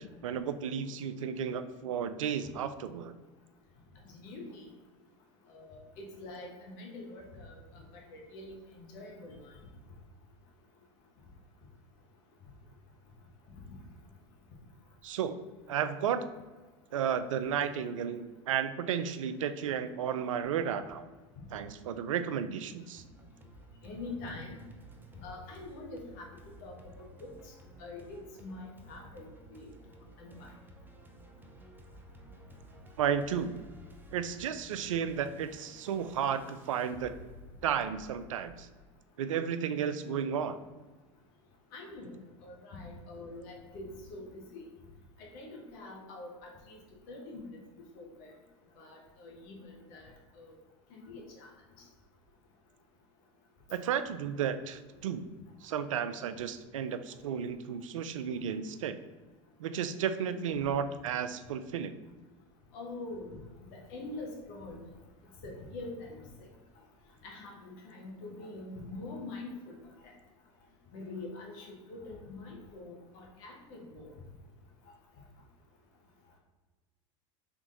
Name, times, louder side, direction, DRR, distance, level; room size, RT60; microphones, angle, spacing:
voice 1, 0.2-3.1 15.0-15.4 15.7-16.2 16.9-21.1 21.5-23.0 33.0-33.5 34.1-37.1 37.6-38.7 39.2-40.6 53.7-55.2 55.6-59.0 59.6-61.9, right 8 dB, 85° right, 11 dB, 0.4 m, -33 dB
voice 2, 4.1-4.7 5.5-9.3 23.8-24.6 25.1-26.3 26.6-26.8 27.2-27.5 27.8-29.3 29.5-29.7 30.2-30.5 41.7-42.2 42.4-44.6 45.2-46.8 47.1-47.5 47.9-48.3 48.8-50.5 50.9-51.5 62.7-63.4 63.7-64.8 65.4-66.5 67.2-69.7 70.0-70.1 70.9-74.1, left 2 dB, 60° left, 0 dB, 1.3 m, -45 dB
sound 1, 23.0-38.7, equal, 10° right, 0.6 m, -54 dB
3.5 x 3.5 x 3.8 m, 1.3 s
hypercardioid pair, 90°, 16 cm